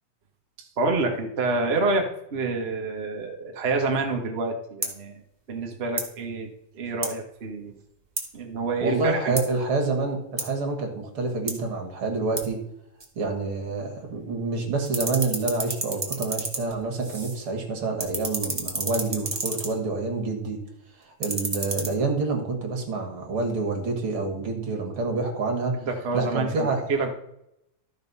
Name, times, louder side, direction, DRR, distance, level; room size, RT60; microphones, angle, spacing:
voice 1, 0.6-5.2 5.5-6.5 6.7-7.7 8.3-9.4 25.8-27.1, right 3 dB, 85° right, 2 dB, 0.5 m, -28 dB
sound 1, 4.8-5.0 5.9-6.1 7.0-7.2 8.2-8.3 9.4-9.5 10.4-10.5 11.5-11.6 12.4-12.5 13.0-13.1 13.8-14.5 14.8-17.5 17.8-19.8 21.0-21.9, right 2 dB, 15° right, 0.8 m, -32 dB
voice 2, 8.8-12.6 13.2-20.6 21.0-25.8 26.1-26.8, right 3 dB, 45° right, 2 dB, 2.5 m, -27 dB
13.0 x 5.3 x 5.5 m, 0.80 s
omnidirectional pair, 3.6 m